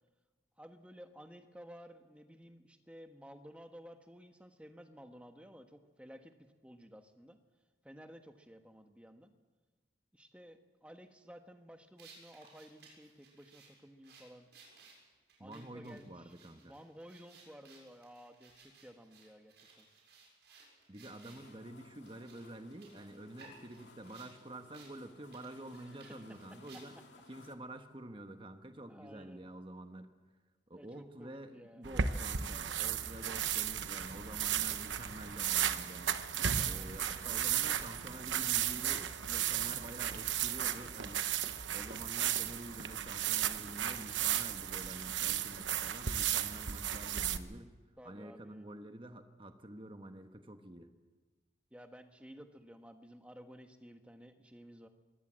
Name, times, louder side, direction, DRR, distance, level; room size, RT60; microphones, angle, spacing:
voice 1, 0.6-7.4 7.8-9.3 10.1-14.5 15.4-16.3 16.6-19.9 21.3-21.4 25.8-26.1 26.7-26.8 28.9-29.5 30.7-31.9 36.7-37.4 48.0-48.7 51.7-54.9, equal, 5° right, 6 dB, 1.3 m, -54 dB
sound 1, 12.0-21.5 22.0-24.3 24.7-24.9 25.2-27.1, right 4 dB, 70° right, 7.1 m, -60 dB
voice 2, 15.4-16.7 20.9-26.9 27.3-30.1 30.7-36.2 36.6-41.3 41.7-47.7 48.0-50.9, right 1 dB, 30° right, 7 dB, 1.3 m, -48 dB
sound 2, 21.1-27.6, left 3 dB, 80° left, 2.1 m, -60 dB
sound 3, 31.8-47.4, right 9 dB, 90° right, 1.0 m, -35 dB
22.5 x 17.0 x 7.6 m, 1.3 s
head